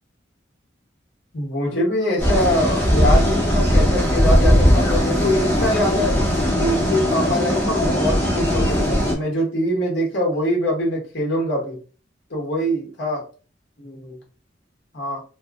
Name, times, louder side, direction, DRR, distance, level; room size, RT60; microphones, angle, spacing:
voice 1, 1.3-6.1 6.5-11.8 12.3-13.2 13.8-14.2 14.9-15.2, equal, 70° left, -2 dB, 1.3 m, -23 dB
sound 1, 2.2-9.1, equal, 10° left, 0.9 m, -18 dB
2.9 x 2.3 x 3.5 m, 0.37 s
head